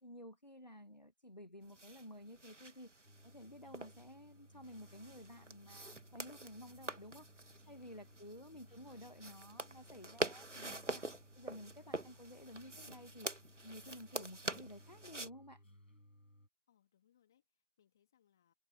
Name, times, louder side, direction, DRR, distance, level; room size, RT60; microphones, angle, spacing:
voice 1, 0.0-2.9 3.2-7.3 7.7-13.3 13.6-15.6, equal, 35° left, 1.7 m, -53 dB
sound 1, 1.6-15.3, right 2 dB, 65° right, 1.8 m, -46 dB
sound 2, 3.0-16.5, left 1 dB, 85° left, 6.4 m, -62 dB
voice 2, 8.1-8.9 16.7-18.5, left 10 dB, 5° left, 3.0 m, -76 dB
figure-of-eight pair, 170°, 38 cm